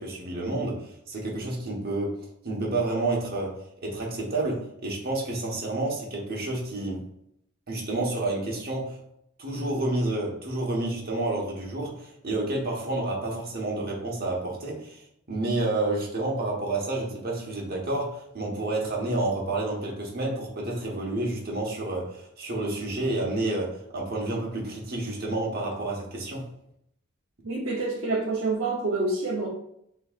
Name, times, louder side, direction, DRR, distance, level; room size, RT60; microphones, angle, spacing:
voice 1, 0.0-3.6 3.8-7.0 7.7-9.0 9.4-15.0 15.3-26.5, right 2 dB, 50° right, 1.3 m, -29 dB
voice 2, 27.4-29.5, right 3 dB, 65° right, 0.9 m, -27 dB
6.7 x 3.1 x 2.5 m
head